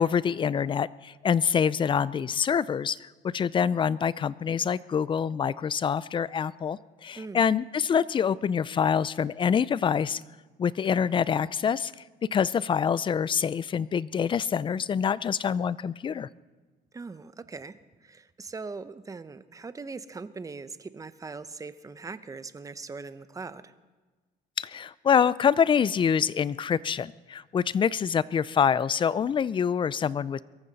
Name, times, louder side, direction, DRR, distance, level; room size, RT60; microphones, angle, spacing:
voice 1, 0.0-3.0 3.3-10.2 10.6-11.9 12.3-16.3 24.6-30.4, left 7 dB, 30° left, 20 dB, 0.4 m, -26 dB
voice 2, 16.9-23.7, right 4 dB, 20° right, 13 dB, 0.7 m, -41 dB
23.0 x 14.0 x 4.1 m, 1.3 s
cardioid pair, 110°, 17 cm